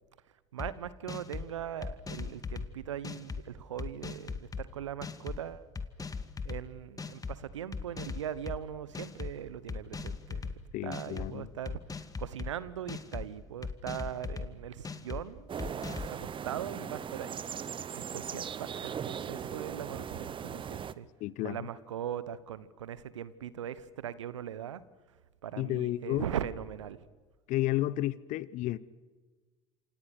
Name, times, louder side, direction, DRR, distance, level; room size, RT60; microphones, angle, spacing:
voice 1, 0.5-5.7 6.4-10.5 10.8-11.8 12.2-17.4 17.9-21.1 21.4-24.8 25.4-27.0, right 10 dB, 80° right, 1.1 m, -40 dB
sound 1, 0.6-0.7 1.1-1.5 1.8-2.7 3.0-3.4 3.8-4.6 5.0-5.4 5.7-6.6 7.0-7.3 7.7-8.6 8.9-9.3 9.7-10.5 10.9-11.3 11.6-12.5 12.9-13.2 13.6-14.5 14.8-15.2 15.6-16.1, left 5 dB, 25° left, 2.0 m, -38 dB
voice 2, 10.7-11.5 21.2-21.6 25.6-26.3 27.5-28.8, left 16 dB, 55° left, 1.0 m, -32 dB
sound 2, 15.5-20.9, right 8 dB, 35° right, 1.0 m, -39 dB
28.0 x 27.0 x 6.6 m
hypercardioid pair, 65°, 15 cm